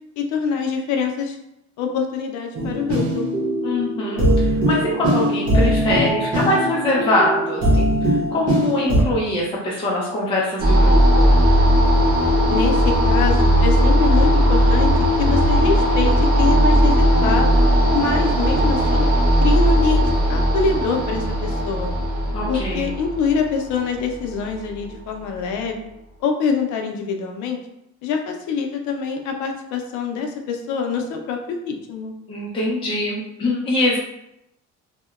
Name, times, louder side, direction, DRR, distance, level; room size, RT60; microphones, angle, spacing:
voice 1, 0.2-1.4 1.8-3.3 12.5-17.5 17.9-19.1 19.4-20.0 20.3-21.9 22.5-25.8 26.2-27.6 28.0-31.4 31.7-32.1, left 5 dB, 75° left, 3 dB, 0.5 m, -24 dB
sound 1, 2.5-9.0, equal, 55° right, 0.9 m, -21 dB
voice 2, 3.6-11.4 22.3-22.9 32.3-34.0, left 1 dB, 20° left, -4 dB, 0.4 m, -23 dB
sound 2, 10.6-24.8, equal, 35° right, 0.5 m, -17 dB
2.7 x 2.1 x 2.3 m, 0.84 s
cardioid pair, 140°, 29 cm